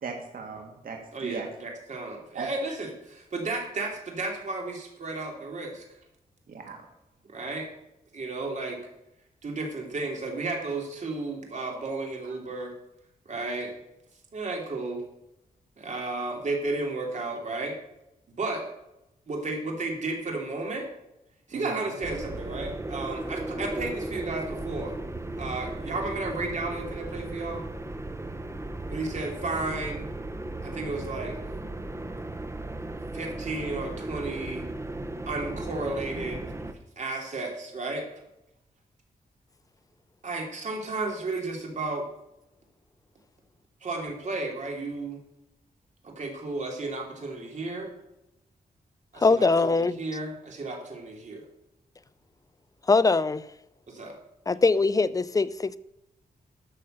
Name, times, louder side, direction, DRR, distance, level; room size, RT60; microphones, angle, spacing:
voice 1, 0.0-1.5 2.3-2.5 6.5-6.8 21.5-21.9, right 5 dB, 70° right, 1.8 m, -38 dB
voice 2, 1.1-5.8 7.3-7.7 8.1-8.8 9.4-12.7 13.2-13.7 14.3-15.0 15.8-17.8 18.3-18.7 19.3-20.9 21.5-24.9 25.4-27.6 28.9-30.1 30.6-31.4 33.1-34.6 35.3-36.5 37.0-38.0 40.2-42.0 43.8-45.2 46.0-47.9 49.1-51.4 53.9-54.2, right 3 dB, 55° right, 3.1 m, -33 dB
sound 1, 22.0-36.7, right 2 dB, 20° right, 1.0 m, -36 dB
voice 3, 49.2-50.0 52.9-53.4 54.5-55.8, left 3 dB, 25° left, 0.5 m, -22 dB
12.5 x 6.7 x 6.6 m
wide cardioid pair, 105°, 15 cm